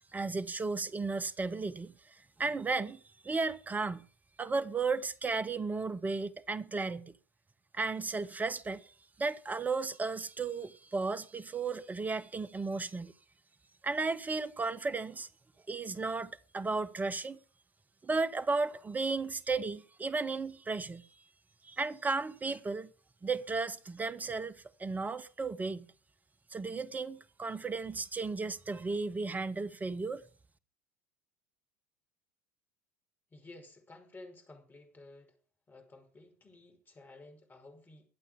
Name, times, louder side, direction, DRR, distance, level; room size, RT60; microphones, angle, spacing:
voice 1, 0.1-1.9 2.4-4.0 4.4-7.1 7.7-8.9 9.2-13.1 13.8-15.3 15.7-17.4 18.0-21.1 21.6-22.9 23.2-25.9 26.5-30.2, right 4 dB, 20° right, 1.3 m, -34 dB
voice 2, 33.3-35.4 35.7-38.1, left 2 dB, 20° left, 5.6 m, -53 dB
22.0 x 8.5 x 5.3 m
figure-of-eight pair, 75°, 9 cm